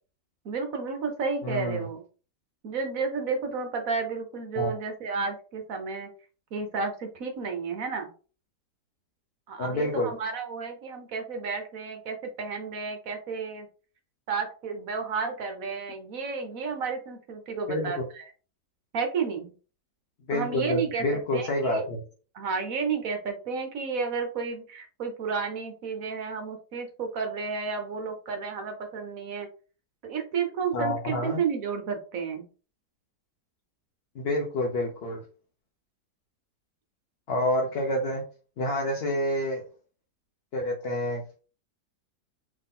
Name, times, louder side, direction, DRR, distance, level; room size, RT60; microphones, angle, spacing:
voice 1, 0.4-2.0 2.6-6.1 6.5-8.1 9.5-13.7 14.3-18.2 18.9-19.5 20.3-21.0 21.3-21.9 22.3-29.5 30.0-32.5, right 5 dB, 60° right, 4 dB, 1.2 m, -32 dB
voice 2, 1.4-1.8 4.5-4.7 9.6-10.1 17.7-17.9 20.3-22.0 30.7-31.4 34.1-35.2 37.3-38.2 38.6-39.6 40.5-41.2, left 1 dB, 50° left, 0 dB, 0.8 m, -28 dB
3.9 x 3.1 x 3.7 m, 0.37 s
omnidirectional pair, 1.8 m